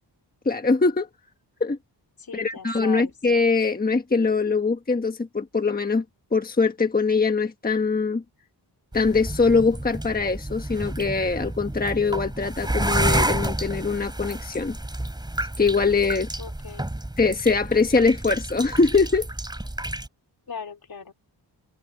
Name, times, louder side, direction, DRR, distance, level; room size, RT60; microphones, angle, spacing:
voice 1, 0.4-1.1 1.6-1.8 2.3-6.0 6.3-8.2 8.9-14.8 15.6-16.3 17.2-19.3, left 4 dB, 20° left, 1.3 m, -22 dB
voice 2, 2.2-3.1 16.4-16.9 20.5-21.1, left 6 dB, 55° left, 3.7 m, -38 dB
sound 1, 8.9-20.1, right 1 dB, 10° right, 3.3 m, -30 dB
wide cardioid pair, 155°, 43 cm